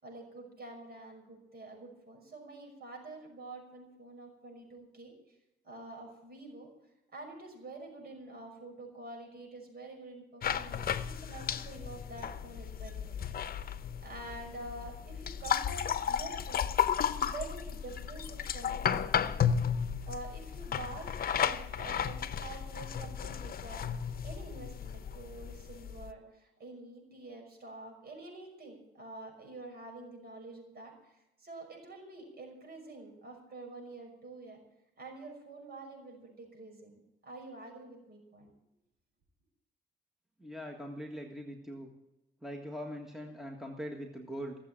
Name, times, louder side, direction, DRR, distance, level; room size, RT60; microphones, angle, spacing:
voice 1, 0.0-5.4 5.6-6.7 7.1-13.2 14.0-16.6 17.2-19.3 20.0-23.9 24.2-34.6 35.0-38.5, right 2 dB, 50° right, 3 dB, 5.7 m, -47 dB
sound 1, 10.4-26.1, left 8 dB, 50° left, 0.8 m, -34 dB
voice 2, 40.4-41.9 42.4-44.6, equal, ahead, 2 dB, 1.7 m, -42 dB
17.0 x 7.5 x 8.7 m, 0.90 s
cardioid pair, 90°, 20 cm